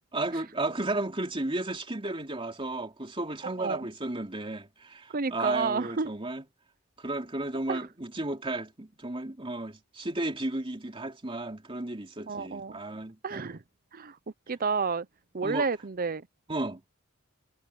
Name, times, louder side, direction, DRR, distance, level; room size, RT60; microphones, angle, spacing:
voice 1, 0.1-6.4 7.0-13.4 15.4-15.7 16.5-16.8, right 2 dB, 25° right, 3.2 m, -33 dB
voice 2, 3.4-3.9 5.1-6.1 7.7-7.9 12.3-12.8 13.2-13.6 13.9-14.2 14.5-15.1 15.3-16.3, right 4 dB, 45° right, 0.7 m, -30 dB
head